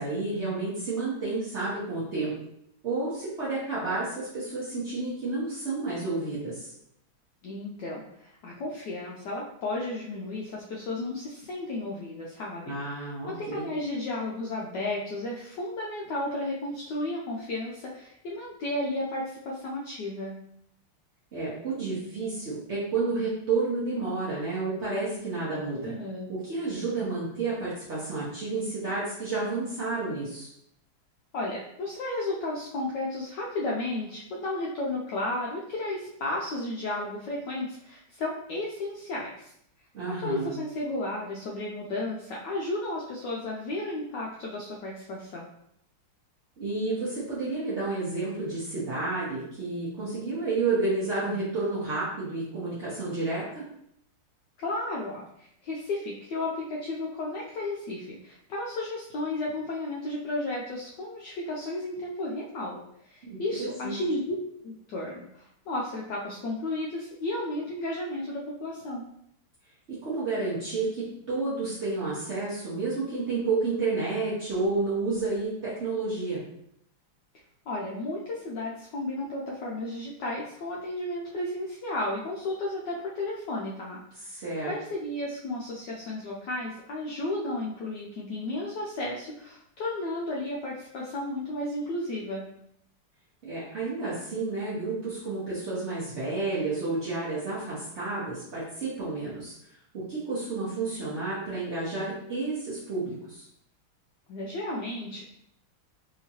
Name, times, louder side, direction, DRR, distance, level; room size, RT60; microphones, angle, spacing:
voice 1, 0.0-2.3 2.8-6.7 12.7-13.6 21.3-25.9 26.3-30.5 39.9-40.5 46.6-53.6 63.2-63.9 69.9-76.4 84.3-84.7 93.4-99.5 99.9-103.4, right 3 dB, 65° right, -9 dB, 0.6 m, -30 dB
voice 2, 7.4-20.4 25.8-26.3 31.3-39.5 40.2-45.5 54.6-64.3 64.6-69.0 77.7-92.4 104.3-105.2, left 2 dB, 80° left, -4 dB, 1.0 m, -33 dB
3.5 x 2.8 x 2.8 m, 0.73 s
omnidirectional pair, 2.4 m